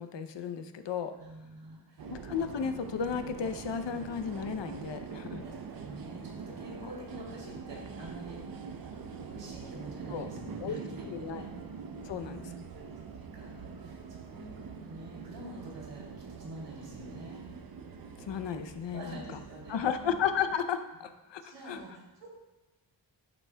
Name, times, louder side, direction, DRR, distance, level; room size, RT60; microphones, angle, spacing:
voice 1, 0.0-1.1 2.1-5.5 10.1-10.3 10.6-10.8 11.1-11.4 12.1-12.4 18.2-19.4 19.7-21.8, left 7 dB, 80° left, 9 dB, 0.7 m, -34 dB
voice 2, 1.2-2.1 5.4-8.8 9.2-11.5 12.1-12.6 13.0-16.1 16.4-17.5 18.9-20.1 21.4-22.3, right 1 dB, 75° right, -3 dB, 3.0 m, -47 dB
sound 1, 2.0-20.6, right 5 dB, 55° right, 0.7 m, -44 dB
11.0 x 8.0 x 2.3 m, 1.1 s
wide cardioid pair, 160°, 43 cm